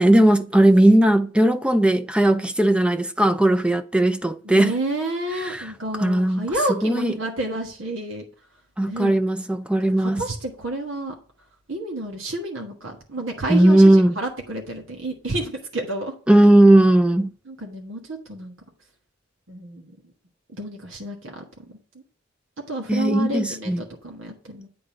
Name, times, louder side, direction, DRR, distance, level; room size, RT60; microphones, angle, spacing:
voice 1, 0.0-4.8 5.5-5.6 6.0-6.5 6.8-7.1 8.8-10.2 13.5-14.1 16.3-17.3 22.9-23.8, right 1 dB, 5° right, 0.4 m, -17 dB
voice 2, 4.4-8.2 8.8-9.2 10.0-11.1 11.7-16.1 17.4-18.5 19.5-19.9 20.5-21.4 22.7-24.7, right 2 dB, 90° right, 1.4 m, -30 dB
8.8 x 3.8 x 5.0 m
head